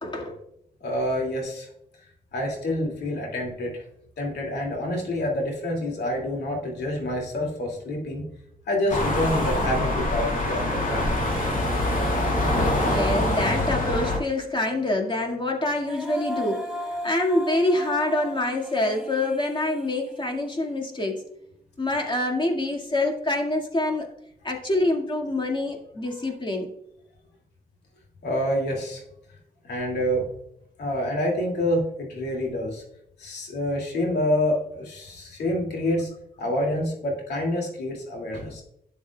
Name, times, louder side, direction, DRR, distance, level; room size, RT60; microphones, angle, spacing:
voice 1, 0.0-0.4 12.8-16.7 17.0-21.2 21.8-24.1 24.4-26.7, left 2 dB, 30° left, 1 dB, 2.1 m, -26 dB
voice 2, 0.8-1.7 2.3-3.8 4.2-8.3 8.7-11.2 28.2-29.0 29.6-30.2 30.8-32.8 33.2-36.1 36.4-38.6, left 1 dB, 90° left, 0 dB, 2.5 m, -27 dB
sound 1, 8.9-14.2, left 1 dB, 55° left, 2.4 m, -24 dB
Female singing, 15.7-20.9, equal, 5° right, 1.3 m, -36 dB
12.0 x 7.2 x 2.4 m, 0.78 s
cardioid pair, 65°, 17 cm